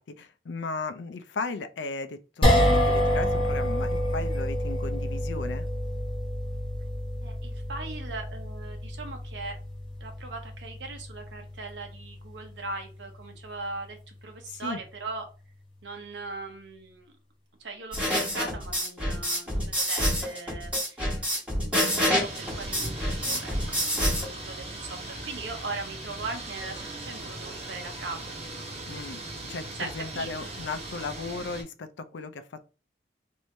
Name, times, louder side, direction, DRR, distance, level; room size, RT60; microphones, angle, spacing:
voice 1, 0.0-5.7 14.5-14.8 28.9-29.2 29.5-32.7, left 3 dB, 85° left, 0.5 m, -36 dB
sound 1, 2.4-14.7, equal, 30° left, 1.3 m, -29 dB
voice 2, 7.2-9.6 10.0-15.3 15.8-17.1 17.6-21.1 21.5-28.3 29.7-30.5, right 3 dB, 80° right, 0.8 m, -39 dB
sound 2, 17.9-24.3, equal, 5° right, 1.4 m, -27 dB
sound 3, 21.8-31.6, right 2 dB, 35° right, 0.9 m, -39 dB
3.1 x 2.7 x 3.2 m
head